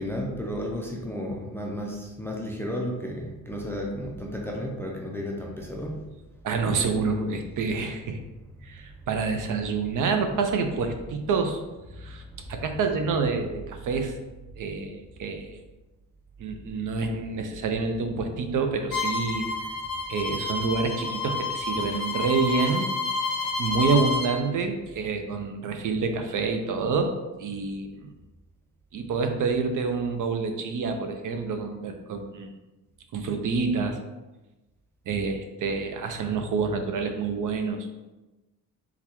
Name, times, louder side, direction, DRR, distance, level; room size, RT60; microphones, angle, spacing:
voice 1, 0.0-6.0 10.8-10.9 11.2-11.4, equal, 5° left, -1 dB, 0.4 m, -33 dB
voice 2, 6.4-8.2 8.6-11.6 12.0-12.2 12.5-14.1 14.6-15.6 16.4-19.5 20.1-22.9 23.6-27.1 27.4-28.1 28.9-32.5 33.1-34.0 35.1-37.8, right 4 dB, 55° right, 5 dB, 0.5 m, -27 dB
Bowed string instrument, 18.9-24.3, left 3 dB, 70° left, 0.7 m, -29 dB
3.8 x 2.2 x 2.9 m, 1.1 s
cardioid pair, 105°, 37 cm